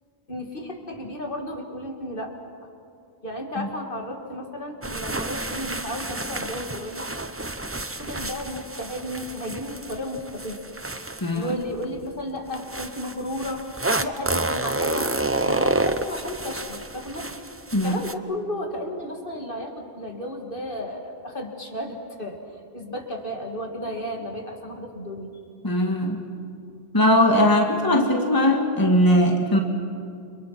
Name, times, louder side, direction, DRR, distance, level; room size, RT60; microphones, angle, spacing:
voice 1, 0.3-2.3 3.2-7.1 8.0-10.8 11.3-15.1 15.5-17.3 17.8-22.4 22.7-25.3, left 1 dB, 60° left, 2 dB, 2.8 m, -33 dB
sound 1, 4.8-11.9 12.5-18.1, right 2 dB, 15° right, 0.7 m, -29 dB
voice 2, 25.6-26.2 26.9-29.6, left 1 dB, 20° left, 2 dB, 1.8 m, -20 dB
29.5 x 26.5 x 6.0 m, 2.5 s
omnidirectional pair, 1.0 m